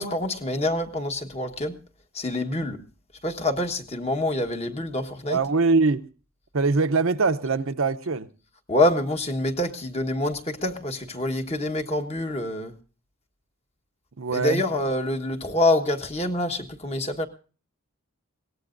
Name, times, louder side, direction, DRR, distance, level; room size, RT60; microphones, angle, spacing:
voice 1, 0.0-1.8 2.1-2.8 3.2-5.4 8.7-12.7 14.3-17.3, left 1 dB, 30° left, 1.3 m, -26 dB
voice 2, 5.3-6.0 6.5-8.3 14.2-14.6, right 4 dB, 65° right, 0.7 m, -22 dB
22.0 x 18.0 x 2.5 m
head